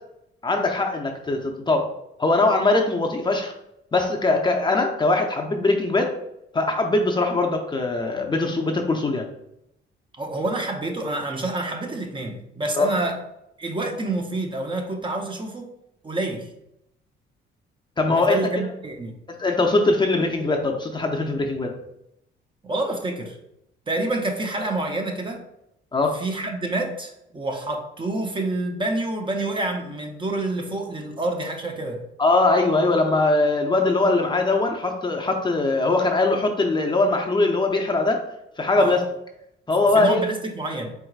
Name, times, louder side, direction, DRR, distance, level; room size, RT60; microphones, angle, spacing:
voice 1, 0.4-1.9 2.2-3.5 3.9-6.1 6.5-9.3 12.7-12.9 18.0-18.4 19.3-21.7 25.9-26.2 32.2-38.2 38.6-39.0 39.7-40.3, left 2 dB, 20° left, 2 dB, 0.5 m, -21 dB
voice 2, 10.1-13.2 13.6-15.7 16.0-16.5 18.1-19.2 22.6-23.4 23.9-25.4 26.1-32.0 38.8-39.0 39.9-40.9, right 2 dB, 25° right, 3 dB, 0.7 m, -28 dB
4.5 x 3.8 x 2.4 m, 0.80 s
cardioid pair, 90°, 20 cm